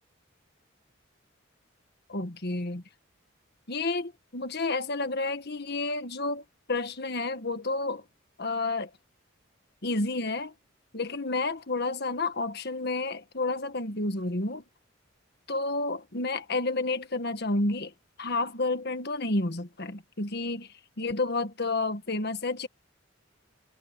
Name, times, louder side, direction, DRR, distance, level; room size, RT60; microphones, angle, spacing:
voice 1, 2.1-2.8 3.7-8.0 8.4-8.9 9.8-10.5 10.9-14.6 15.5-17.9 18.2-20.7 21.0-22.7, left 2 dB, 55° left, 1.6 m, -30 dB
head